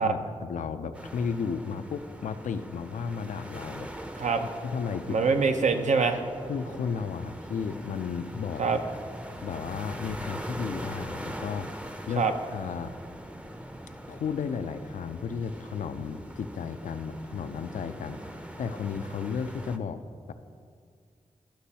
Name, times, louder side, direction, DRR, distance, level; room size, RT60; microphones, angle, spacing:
voice 1, 0.0-3.9 4.6-5.2 6.5-8.7 9.4-11.7 12.1-12.3 12.5-12.9 14.1-18.3 18.6-20.0 20.3-20.4, left 6 dB, 85° left, 10 dB, 0.4 m, -33 dB
sound 1, 0.9-19.8, right 1 dB, 10° right, 0.5 m, -42 dB
voice 2, 5.1-6.2 8.6-8.8 12.2-12.3, right 5 dB, 70° right, 6 dB, 0.6 m, -24 dB
11.5 x 6.0 x 2.8 m, 2.2 s
cardioid pair, 50°, 13 cm